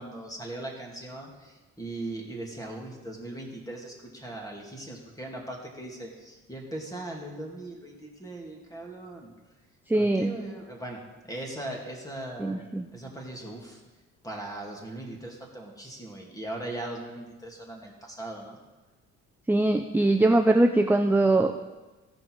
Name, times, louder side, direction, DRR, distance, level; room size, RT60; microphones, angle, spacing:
voice 1, 0.0-9.3 9.9-11.0 11.2-12.7 12.9-13.8 14.2-18.6, right 1 dB, 10° left, 0 dB, 2.4 m, -39 dB
voice 2, 9.9-10.3 12.4-12.8 19.5-21.5, right 2 dB, 5° right, 6 dB, 0.4 m, -22 dB
15.5 x 5.3 x 4.6 m, 1.2 s
cardioid pair, 90°, 30 cm